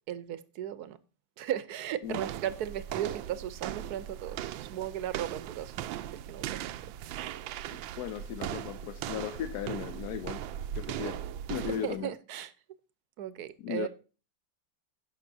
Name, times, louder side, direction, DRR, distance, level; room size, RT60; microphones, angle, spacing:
voice 1, 0.1-1.0 1.4-5.7 6.1-7.4 11.5-12.5 13.2-13.9, right 11 dB, 65° right, 1.1 m, -37 dB
sound 1, 2.1-12.0, right 11 dB, 80° right, 1.3 m, -38 dB
voice 2, 7.7-10.4 10.8-12.1 13.6-13.9, left 10 dB, 70° left, 1.0 m, -37 dB
16.5 x 5.8 x 2.7 m
omnidirectional pair, 2.1 m